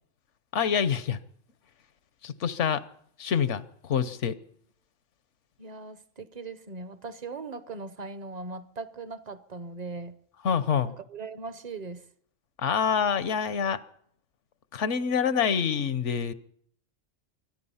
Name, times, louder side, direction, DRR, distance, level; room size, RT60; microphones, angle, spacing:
voice 1, 0.5-1.2 2.2-2.8 3.2-4.3 10.4-10.9 12.6-13.8 14.7-16.3, left 7 dB, 70° left, 1.1 m, -26 dB
voice 2, 5.6-10.2 10.9-12.1, right 3 dB, 40° right, 0.8 m, -39 dB
24.0 x 10.5 x 5.6 m
omnidirectional pair, 1.3 m